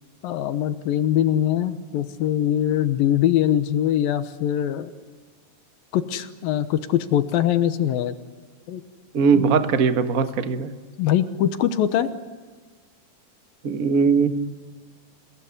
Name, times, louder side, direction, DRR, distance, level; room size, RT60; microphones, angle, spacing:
voice 1, 0.2-4.9 5.9-8.2 8.7-8.8 9.3-9.4 11.0-12.1, left 11 dB, 85° left, 10 dB, 2.8 m, -22 dB
voice 2, 9.1-10.7 13.6-14.3, right 5 dB, 75° right, 8 dB, 0.8 m, -20 dB
29.5 x 18.0 x 9.7 m, 1.4 s
omnidirectional pair, 4.0 m